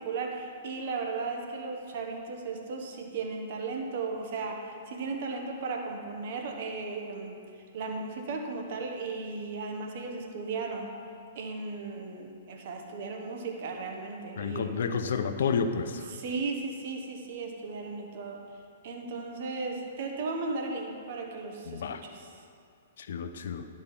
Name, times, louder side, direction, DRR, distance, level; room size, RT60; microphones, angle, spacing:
voice 1, 0.0-7.3 7.7-10.9 11.3-14.9 16.1-18.4 18.8-22.3, right 4 dB, 55° right, 2 dB, 1.3 m, -36 dB
voice 2, 14.4-16.1 21.7-22.0 23.0-23.7, left 6 dB, 65° left, 8 dB, 0.6 m, -30 dB
11.0 x 5.3 x 5.6 m, 2.3 s
figure-of-eight pair, 115°, 0 cm